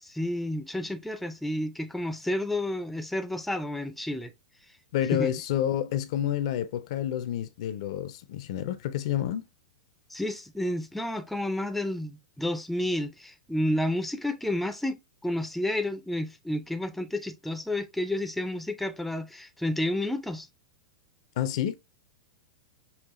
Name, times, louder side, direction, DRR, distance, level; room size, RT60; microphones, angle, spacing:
voice 1, 0.0-4.3 5.1-5.3 10.1-20.5, left 1 dB, ahead, 0.5 m, -30 dB
voice 2, 4.9-9.4 21.4-21.7, left 11 dB, 55° left, 0.5 m, -29 dB
5.5 x 2.4 x 3.0 m
figure-of-eight pair, 100°, 4 cm